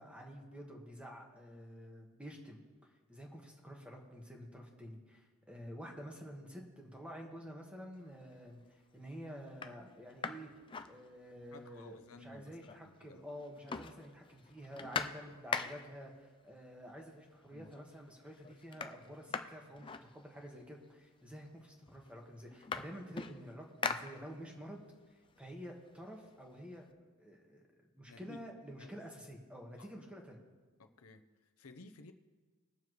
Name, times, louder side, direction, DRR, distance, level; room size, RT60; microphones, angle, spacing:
voice 1, 0.0-2.6 3.1-8.6 8.9-10.5 10.9-24.8 25.4-27.6 28.0-30.4, equal, 5° right, 0 dB, 1.4 m, -49 dB
sound 1, 8.1-8.5 9.0-9.1 9.5-11.6 11.9-12.0 12.2-13.1 13.3-16.1 17.0-17.1 17.5-18.0 18.2-20.7 21.5-21.6 21.9-24.7 25.1-26.8, left 5 dB, 25° left, 0.4 m, -43 dB
voice 2, 11.5-13.3 28.0-28.4 28.8-28.9 29.8-30.0 30.8-32.1, left 2 dB, 80° left, 8 dB, 0.8 m, -55 dB
21.0 x 7.1 x 3.1 m, 1.4 s
head